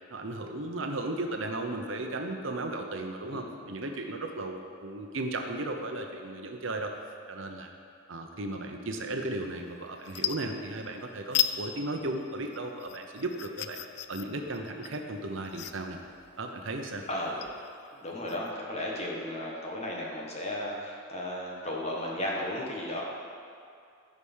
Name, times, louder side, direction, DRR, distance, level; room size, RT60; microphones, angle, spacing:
voice 1, 0.1-6.9 7.3-7.7 8.1-13.8 14.1-16.0 16.4-17.1, right 2 dB, 70° right, 4 dB, 0.9 m, -35 dB
sound 1, 9.5-9.7 10.0-11.0 11.3-11.6 12.0-18.5, left 11 dB, 55° left, 0.4 m, -35 dB
voice 2, 17.1-23.0, left 1 dB, 30° left, -3 dB, 1.6 m, -35 dB
14.5 x 4.9 x 5.6 m, 2.4 s
head